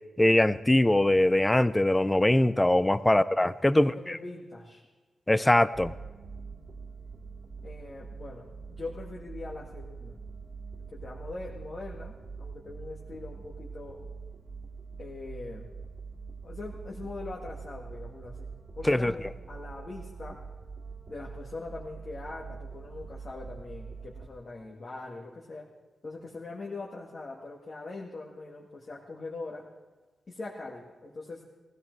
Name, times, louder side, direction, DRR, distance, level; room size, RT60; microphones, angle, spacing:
voice 1, 0.2-3.9 5.3-5.9 18.8-19.1, left 1 dB, 10° left, 16 dB, 0.4 m, -22 dB
voice 2, 3.9-4.8 7.6-10.2 10.9-14.1 15.0-15.7 16.4-18.5 18.7-20.4 21.1-25.7 26.0-29.6 30.3-31.4, left 3 dB, 30° left, -3 dB, 1.9 m, -42 dB
sound 1, 5.7-24.3, right 5 dB, 50° right, 2.2 m, -44 dB
19.0 x 16.0 x 4.6 m, 1.3 s
wide cardioid pair, 180°, 0 cm